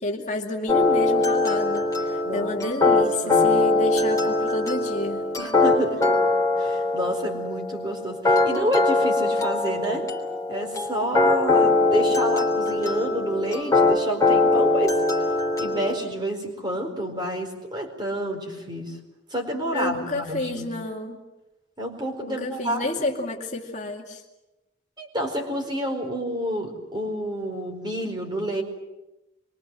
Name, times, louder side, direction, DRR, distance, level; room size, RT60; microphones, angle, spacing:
voice 1, 0.0-5.2 19.7-21.2 22.3-24.2, left 2 dB, 40° left, 1 dB, 2.4 m, -30 dB
sound 1, 0.7-16.0, left 2 dB, 15° left, 3.4 m, -22 dB
voice 2, 2.2-2.8 3.2-3.5 5.4-6.1 6.6-10.1 10.5-15.0 15.6-19.0 19.3-20.7 21.8-23.1 25.0-28.6, right 1 dB, 20° right, 3 dB, 4.6 m, -29 dB
26.5 x 24.0 x 7.7 m, 1.0 s
head